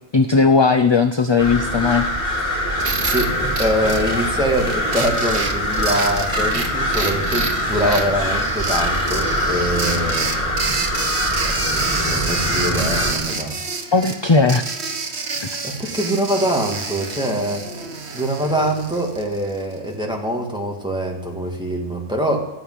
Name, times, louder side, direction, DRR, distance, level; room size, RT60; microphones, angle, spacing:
voice 1, 0.1-2.1 13.9-14.8 15.5-15.6, left 4 dB, 30° left, 9 dB, 0.6 m, -17 dB
sound 1, 1.4-13.1, equal, 55° left, 4.3 m, -23 dB
sound 2, 2.8-19.8, right 4 dB, 70° right, 1.6 m, -28 dB
voice 2, 3.0-3.3 3.6-10.5 11.4-13.6 15.6-17.6 18.1-22.5, right 1 dB, 5° right, 0 dB, 2.6 m, -24 dB
14.0 x 9.6 x 9.8 m, 0.95 s
omnidirectional pair, 1.2 m